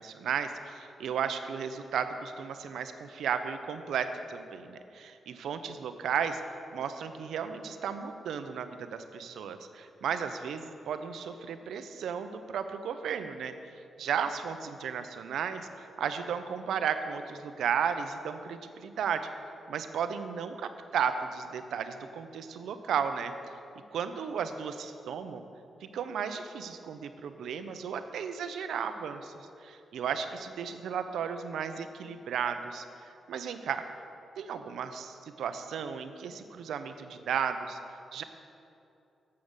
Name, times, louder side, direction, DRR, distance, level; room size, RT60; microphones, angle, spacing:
voice 1, 0.0-6.4 6.7-13.5 14.0-19.3 19.7-23.3 23.9-25.4 25.8-33.8 34.4-38.2, right 7 dB, 90° right, 9 dB, 0.5 m, -34 dB
7.6 x 7.0 x 6.5 m, 2.7 s
wide cardioid pair, 130°, 0 cm